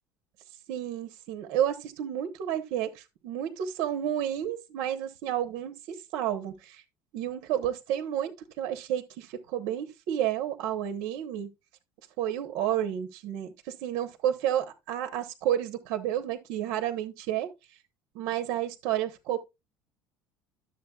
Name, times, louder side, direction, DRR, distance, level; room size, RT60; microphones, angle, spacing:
voice 1, 0.7-6.8 7.1-8.3 8.6-11.5 12.2-17.5 18.1-19.4, right 11 dB, 65° right, 1.2 m, -31 dB
12.5 x 7.4 x 2.4 m
cardioid pair, 180°, 7 cm